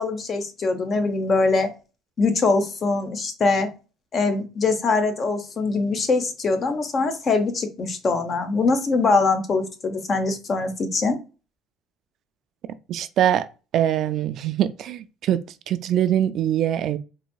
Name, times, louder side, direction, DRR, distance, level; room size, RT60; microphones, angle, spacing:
voice 1, 0.0-1.7 2.2-3.7 4.1-11.2, left 3 dB, 35° left, 0.7 m, -22 dB
voice 2, 12.9-13.5 13.7-15.4 15.7-17.0, right 11 dB, 55° right, 0.3 m, -22 dB
4.0 x 2.6 x 2.2 m
cardioid pair, 130°, 0 cm